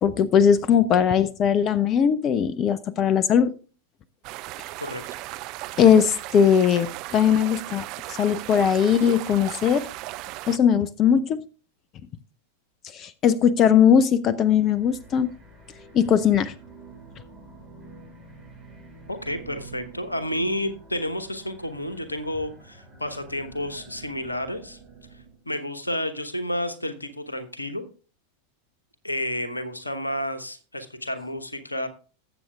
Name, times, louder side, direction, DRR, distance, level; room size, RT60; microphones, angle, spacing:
voice 1, 0.0-3.5 5.8-9.9 10.5-11.4 12.9-15.3 15.9-16.5, left 8 dB, 30° left, 18 dB, 0.5 m, -20 dB
sound 1, 4.2-10.6, right 18 dB, 40° right, 0.5 m, -36 dB
sound 2, 14.6-25.4, right 3 dB, 10° right, 6.3 m, -48 dB
voice 2, 19.1-24.8 25.5-27.8 29.0-31.9, left 1 dB, 85° left, 10 dB, 1.1 m, -30 dB
19.5 x 7.8 x 2.4 m, 0.37 s
figure-of-eight pair, 90°, 0 cm